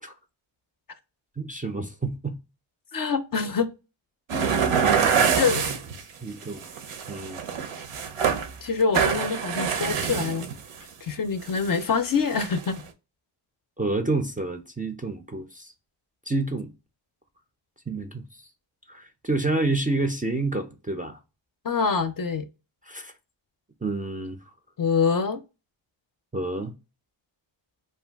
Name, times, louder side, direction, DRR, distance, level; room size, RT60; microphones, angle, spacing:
voice 1, 1.4-2.4 4.8-5.7 6.2-6.6 7.1-7.4 13.8-15.7 16.3-16.7 17.9-18.2 18.9-21.2 22.9-23.1 23.8-24.4 26.3-26.7, right 2 dB, 20° right, 0.3 m, -29 dB
voice 2, 2.9-3.7 4.4-4.6 5.4-5.7 8.6-10.5 11.0-12.8 21.6-22.5 24.8-25.4, left 5 dB, 45° left, 0.4 m, -25 dB
sound 1, 4.3-6.0 6.4-8.5 8.8-10.7 11.4-11.8 12.3-12.8, right 7 dB, 90° right, 0.6 m, -25 dB
2.6 x 2.3 x 3.3 m
cardioid pair, 55°, 49 cm